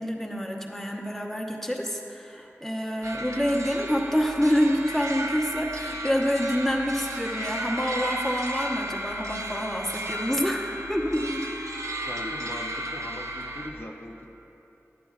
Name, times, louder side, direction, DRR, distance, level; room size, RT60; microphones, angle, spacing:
voice 1, 0.0-11.7, equal, 5° left, -1 dB, 0.9 m, -27 dB
sound 1, 3.0-13.7, right 1 dB, 75° right, 0.6 m, -34 dB
voice 2, 12.0-14.3, left 1 dB, 45° left, -1 dB, 0.6 m, -40 dB
12.0 x 9.0 x 2.4 m, 2.9 s
wide cardioid pair, 50°, 5 cm